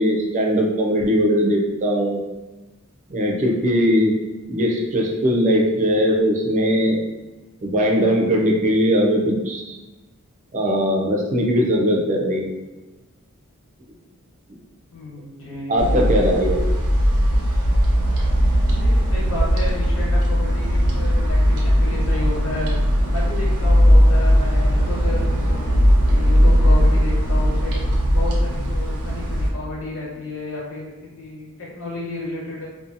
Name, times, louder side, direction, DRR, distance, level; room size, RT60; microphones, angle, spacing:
voice 1, 0.0-2.2 3.1-4.1 4.5-7.0 7.6-9.8 10.5-12.5 15.7-16.6, equal, 35° right, -1 dB, 0.5 m, -20 dB
voice 2, 14.9-16.1 18.7-22.7 23.1-25.8 26.1-27.8 28.1-32.7, left 1 dB, 65° left, -5 dB, 1.0 m, -32 dB
sound 1, 15.8-29.5, equal, 80° right, 0.6 m, -18 dB
2.5 x 2.3 x 2.6 m, 1.1 s
head